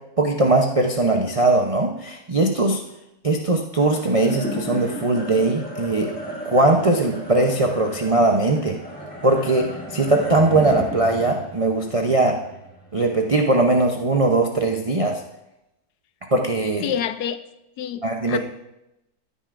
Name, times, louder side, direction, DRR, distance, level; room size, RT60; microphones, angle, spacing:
voice 1, 0.2-2.8 3.2-6.1 6.4-8.8 9.2-12.4 12.9-15.2 16.3-16.9 18.0-18.4, right 2 dB, 55° right, 2 dB, 0.4 m, -20 dB
sound 1, 3.8-14.3, equal, 5° left, 1.8 m, -35 dB
voice 2, 16.8-17.4 17.8-18.4, left 9 dB, 75° left, 11 dB, 1.1 m, -27 dB
14.0 x 9.2 x 2.5 m, 0.88 s
omnidirectional pair, 1.8 m